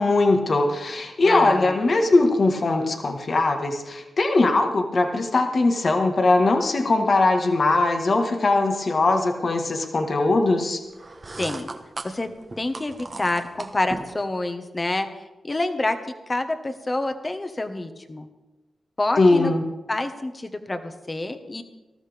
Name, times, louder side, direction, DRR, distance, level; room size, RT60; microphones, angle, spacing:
voice 1, 0.0-10.8 19.2-19.6, left 2 dB, 50° left, 4 dB, 1.7 m, -20 dB
voice 2, 1.2-1.8 11.4-11.7 12.0-12.3 12.6-15.1 15.4-16.0 16.3-18.3 19.0-19.5 19.9-21.6, left 2 dB, 30° left, 7 dB, 1.5 m, -27 dB
sound 1, 10.9-14.2, right 3 dB, 40° right, 1.3 m, -37 dB
19.5 x 13.5 x 3.6 m, 1.1 s
cardioid pair, 60°, 0 cm